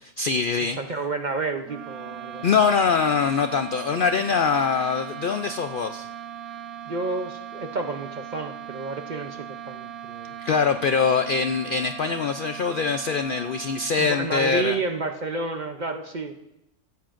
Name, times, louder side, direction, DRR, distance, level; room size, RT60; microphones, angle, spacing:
voice 1, 0.2-0.8 2.4-6.1 10.4-14.8, left 5 dB, 90° left, 8 dB, 0.4 m, -23 dB
voice 2, 0.8-2.5 6.9-10.4 14.0-16.3, right 3 dB, 45° right, 6 dB, 0.6 m, -30 dB
sound 1, 1.6-14.3, right 10 dB, 90° right, 1.3 m, -39 dB
16.0 x 15.0 x 2.5 m, 0.87 s
omnidirectional pair, 1.5 m